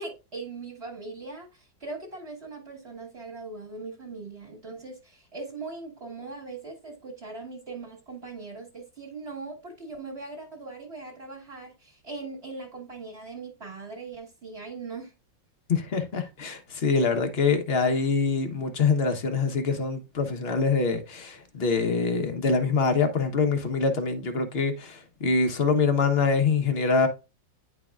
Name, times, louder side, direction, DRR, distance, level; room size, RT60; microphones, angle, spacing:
voice 1, 0.0-15.1, right 3 dB, 35° right, 1.7 m, -40 dB
voice 2, 15.7-27.1, left 4 dB, 40° left, 1.0 m, -24 dB
10.0 x 4.7 x 2.4 m
omnidirectional pair, 2.0 m